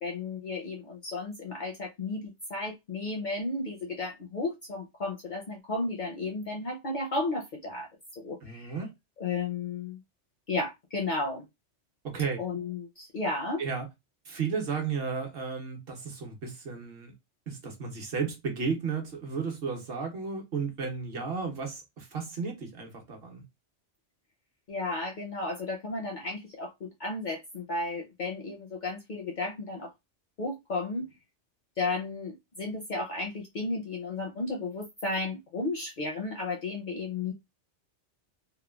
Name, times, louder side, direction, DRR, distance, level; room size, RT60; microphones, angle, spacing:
voice 1, 0.0-7.9 8.2-8.7 9.2-10.0 10.5-11.4 12.4-13.6 24.7-29.9 30.4-31.1 31.8-37.3, left 3 dB, 55° left, 0.5 m, -33 dB
voice 2, 8.4-8.9 12.0-12.4 13.6-13.9 14.2-17.1 17.5-23.4, right 5 dB, 60° right, 0.9 m, -33 dB
3.0 x 2.2 x 2.2 m
omnidirectional pair, 1.2 m